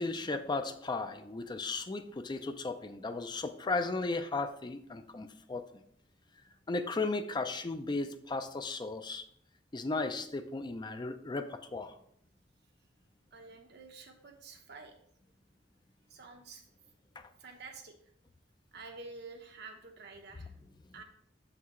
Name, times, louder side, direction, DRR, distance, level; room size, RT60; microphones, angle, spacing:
voice 1, 0.0-5.8 6.7-9.2 9.7-11.9 17.2-17.3, left 3 dB, 25° left, 9 dB, 0.5 m, -35 dB
voice 2, 13.3-14.9 16.1-16.6 17.4-18.1 18.7-20.6 20.9-21.0, right 4 dB, 60° right, 3 dB, 1.1 m, -49 dB
6.8 x 5.8 x 3.1 m, 0.68 s
head